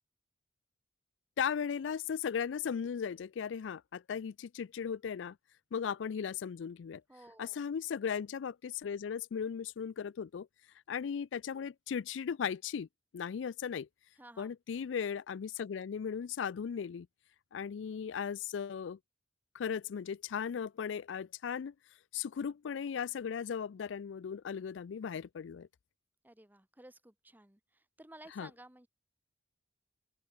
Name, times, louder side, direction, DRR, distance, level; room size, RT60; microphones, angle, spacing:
voice 1, 1.4-5.4 5.7-7.0 7.4-10.5 10.9-12.9 13.1-13.9 14.4-17.1 17.5-19.0 19.5-21.7 22.1-25.7 28.4-28.5, left 7 dB, 80° left, 0.4 m, -37 dB
voice 2, 7.1-7.6 14.2-14.5 26.2-28.9, right 1 dB, 10° right, 1.3 m, -55 dB
open air
head